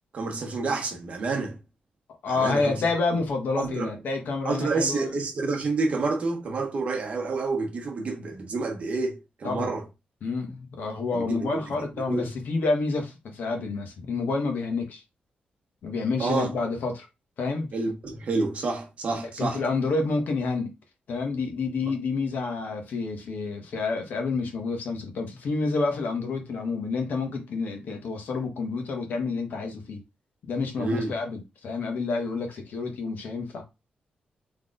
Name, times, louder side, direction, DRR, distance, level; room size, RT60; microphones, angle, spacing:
voice 1, 0.1-1.6 2.3-2.7 3.6-3.9 4.4-9.8 11.1-11.5 12.1-12.3 16.2-16.5 17.7-19.6 30.8-31.1, right 3 dB, 40° right, 1.3 m, -28 dB
voice 2, 2.2-5.1 9.4-9.7 10.2-15.0 15.8-17.1 17.4-17.7 19.4-20.7 21.1-30.0 30.5-33.6, left 3 dB, 65° left, 1.4 m, -29 dB
4.0 x 3.4 x 3.9 m
wide cardioid pair, 175°, 3 cm